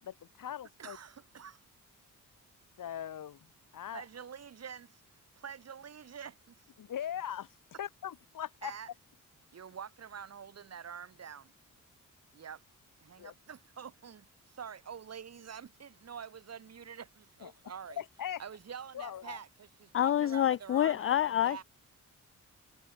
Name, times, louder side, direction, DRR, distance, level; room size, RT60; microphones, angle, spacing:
voice 1, 0.0-1.0 2.8-4.0 6.8-8.7 13.2-13.3 17.4-17.5 18.0-18.4 18.9-19.4, left 10 dB, 75° left, 3.7 m, -40 dB
voice 2, 0.8-1.6 3.9-5.0 5.4-6.7 8.6-8.9 9.5-11.5 12.3-12.6 13.0-18.0 18.4-21.6, right 7 dB, 50° right, 4.8 m, -46 dB
voice 3, 19.9-21.6, left 11 dB, 40° left, 0.4 m, -27 dB
wide cardioid pair, 170°, 33 cm